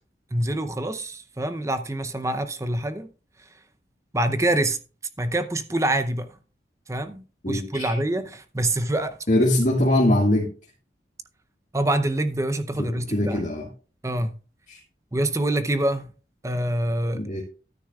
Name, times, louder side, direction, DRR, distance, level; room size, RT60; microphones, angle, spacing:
voice 1, 0.3-3.1 3.4-3.5 4.1-4.8 5.2-6.4 6.9-9.2 11.7-13.4 14.0-14.4 15.1-16.1 16.4-17.3, right 1 dB, 15° right, 0.6 m, -26 dB
voice 2, 7.4-8.0 9.3-10.5 12.8-13.7 14.7-14.8 17.1-17.4, left 1 dB, 45° left, 1.8 m, -22 dB
13.0 x 10.0 x 2.4 m
head